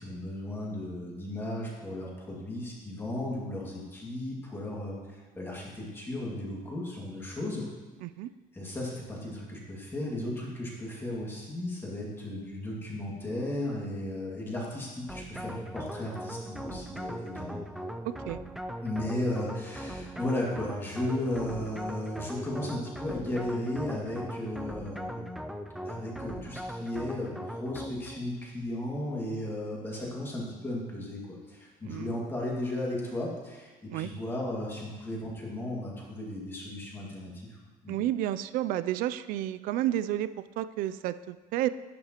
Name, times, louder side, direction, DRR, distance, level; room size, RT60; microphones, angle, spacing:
voice 1, 0.0-7.7 8.5-17.6 18.8-25.4 25.8-37.6 37.8-38.0, left 1 dB, 15° left, -3 dB, 2.1 m, -35 dB
sound 1, 15.1-28.3, equal, ahead, 0.3 m, -39 dB
voice 2, 18.0-18.4 31.8-32.2 33.9-34.1 37.9-41.7, right 13 dB, 65° right, 14 dB, 0.4 m, -31 dB
10.5 x 9.7 x 3.0 m, 1.2 s
cardioid pair, 160°, 15 cm